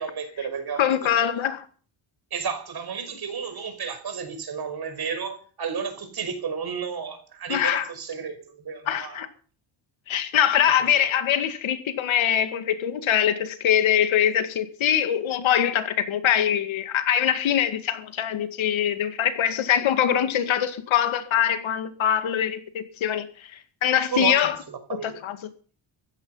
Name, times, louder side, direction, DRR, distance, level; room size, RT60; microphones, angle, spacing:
voice 1, 0.0-1.3 2.3-9.3 10.9-11.1 24.1-25.2, right 6 dB, 50° right, 5.5 m, -32 dB
voice 2, 0.8-1.6 7.5-7.9 8.9-9.3 10.1-24.6 25.0-25.4, left 10 dB, 70° left, 2.2 m, -23 dB
15.5 x 13.5 x 5.6 m
cardioid pair, 105°, 49 cm